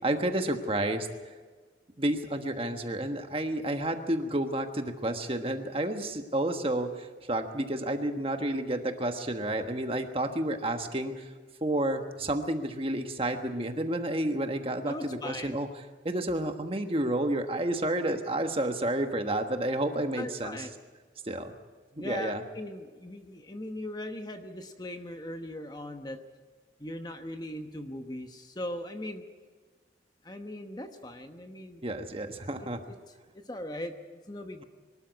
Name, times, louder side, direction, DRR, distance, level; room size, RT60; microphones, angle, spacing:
voice 1, 0.0-1.1 2.0-11.3 11.6-15.7 16.0-20.7 21.2-21.5 21.9-22.4 31.8-32.8, right 1 dB, 30° right, 6 dB, 1.3 m, -30 dB
voice 2, 14.9-15.6 20.2-20.7 22.0-26.2 26.8-29.2 30.2-31.8 33.5-33.9 34.3-34.6, left 1 dB, 20° left, 6 dB, 1.0 m, -39 dB
23.0 x 13.0 x 9.5 m, 1.4 s
head